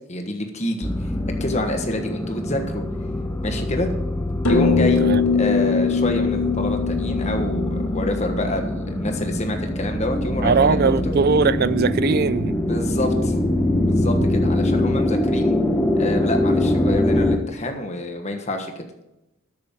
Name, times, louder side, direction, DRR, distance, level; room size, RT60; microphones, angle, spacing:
voice 1, 0.1-0.9 1.4-2.8 3.4-3.9 4.5-5.0 5.3-10.8 11.0-11.1 12.7-13.3 13.9-15.6 16.0-18.8, left 1 dB, 30° left, 1.3 m, -27 dB
sound 1, 0.8-17.4, left 1 dB, 10° left, 0.8 m, -23 dB
sound 2, 4.4-9.1, left 5 dB, 80° left, 1.6 m, -22 dB
voice 2, 10.4-12.6 14.2-14.3, right 5 dB, 45° right, 0.4 m, -20 dB
13.0 x 8.6 x 3.7 m
head